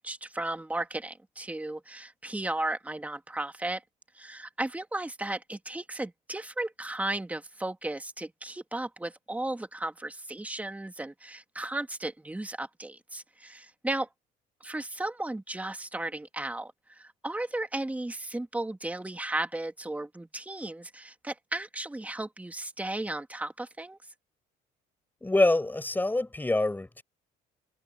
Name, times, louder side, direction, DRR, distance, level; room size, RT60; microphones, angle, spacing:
voice 1, 0.0-3.8 4.1-14.1 14.6-24.0, right 2 dB, 10° right, 2.2 m, -35 dB
voice 2, 25.2-27.0, left 2 dB, 10° left, 5.4 m, -25 dB
cardioid pair, 110°, 17 cm